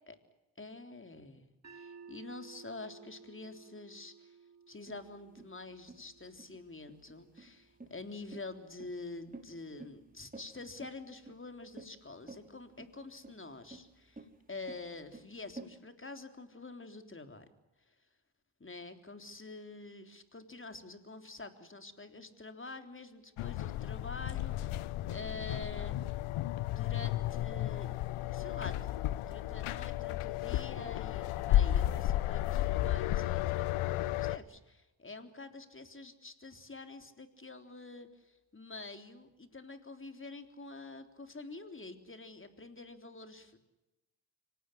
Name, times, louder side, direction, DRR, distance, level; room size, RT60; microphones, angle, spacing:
voice 1, 0.6-1.5 1.7-4.4 4.7-17.5 17.9-18.0 18.6-26.0 26.6-28.0 28.2-43.6, left 3 dB, 25° left, 8 dB, 3.6 m, -47 dB
sound 1, 1.6-7.8, right 5 dB, 30° right, 5.8 m, -56 dB
sound 2, 4.9-15.7, right 2 dB, 15° right, 5.8 m, -52 dB
sound 3, 23.4-34.4, left 14 dB, 80° left, 1.0 m, -33 dB
25.5 x 18.5 x 9.8 m, 0.99 s
supercardioid pair, 60°, 50 cm